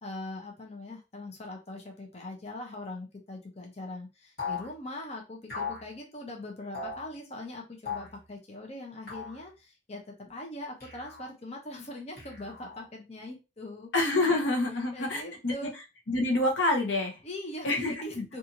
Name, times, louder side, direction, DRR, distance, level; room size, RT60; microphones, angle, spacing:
voice 1, 0.0-10.0 10.3-13.9 14.9-15.7 17.2-18.4, left 1 dB, 35° left, 1 dB, 0.6 m, -41 dB
sound 1, 4.4-4.7 5.5-5.9 6.7-7.0 7.8-8.2 9.1-9.4 10.8-11.3 12.2-12.9, left 5 dB, 55° left, 1.4 m, -37 dB
voice 2, 13.9-15.5 16.1-17.2 17.6-18.2, left 2 dB, 80° left, 2 dB, 0.8 m, -27 dB
2.6 x 2.4 x 2.8 m, 0.27 s
head